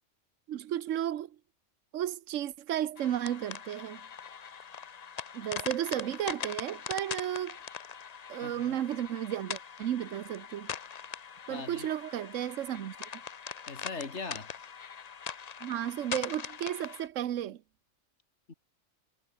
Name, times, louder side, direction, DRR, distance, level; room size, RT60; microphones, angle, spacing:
voice 1, 0.5-1.4 1.9-4.0 5.3-7.6 8.3-10.7 11.5-13.0 15.6-17.6, right 11 dB, 75° right, 1.2 m, -33 dB
sound 1, 3.0-17.1, left 7 dB, 40° left, 0.6 m, -42 dB
voice 2, 8.4-8.8 11.5-11.9 13.7-14.7 18.5-18.6, left 4 dB, 60° left, 2.9 m, -41 dB
omnidirectional pair, 1.3 m